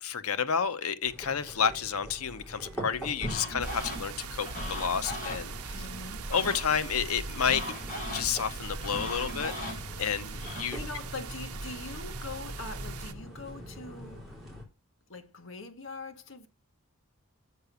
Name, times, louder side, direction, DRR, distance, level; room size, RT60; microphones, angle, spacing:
voice 1, 0.0-5.8 6.3-7.6 8.1-10.8, left 7 dB, 85° left, 0.8 m, -30 dB
sound 1, 1.0-14.6, equal, ahead, 3.5 m, -44 dB
sound 2, 3.2-10.7, left 1 dB, 35° left, 4.3 m, -40 dB
sound 3, 3.6-13.1, right 4 dB, 90° right, 0.7 m, -41 dB
voice 2, 5.7-6.3 10.3-14.2 15.1-16.5, left 3 dB, 60° left, 1.2 m, -43 dB
6.6 x 5.8 x 6.7 m
head